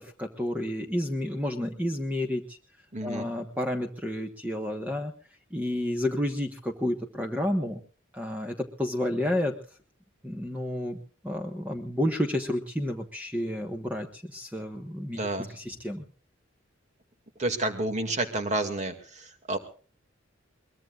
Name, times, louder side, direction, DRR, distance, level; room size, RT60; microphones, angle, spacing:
voice 1, 0.0-2.6 3.0-5.1 5.5-7.8 8.1-9.5 10.2-11.0 11.2-15.2 15.6-16.0, left 1 dB, 10° right, 4 dB, 1.3 m, -30 dB
voice 2, 2.9-3.3 15.2-15.6 17.4-19.6, right 2 dB, 35° right, 6 dB, 2.3 m, -30 dB
22.5 x 21.5 x 2.5 m, 0.41 s
head